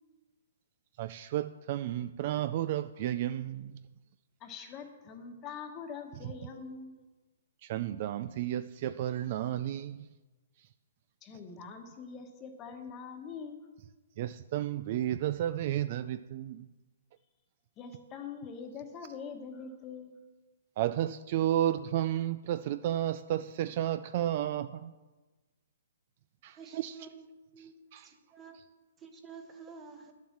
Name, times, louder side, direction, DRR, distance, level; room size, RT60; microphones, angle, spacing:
voice 1, 1.0-3.8 6.2-6.3 7.6-10.1 14.2-16.7 20.8-24.9 26.4-27.1 27.6-27.7 27.9-28.1, right 12 dB, 35° right, 13 dB, 0.3 m, -32 dB
voice 2, 4.4-6.9 11.2-13.6 17.8-20.1, left 5 dB, 20° left, 5 dB, 1.2 m, -44 dB
voice 3, 26.5-27.3 27.5-28.6 29.0-30.1, right 5 dB, 10° right, 5 dB, 1.1 m, -50 dB
10.5 x 7.3 x 7.2 m, 1.2 s
hypercardioid pair, 165°, 0 cm